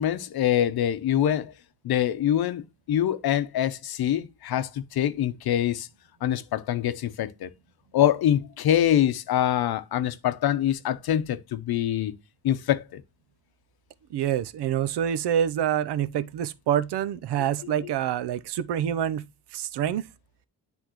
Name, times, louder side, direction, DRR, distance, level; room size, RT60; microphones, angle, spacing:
voice 1, 0.0-1.5 1.8-5.9 6.2-7.5 7.9-12.1 12.4-13.0 17.4-17.5 17.8-17.9, left 11 dB, 70° left, 0.7 m, -25 dB
voice 2, 14.1-19.2 19.5-20.1, right 10 dB, 85° right, 0.7 m, -26 dB
10.0 x 3.6 x 3.0 m
wide cardioid pair, 170°, 40 cm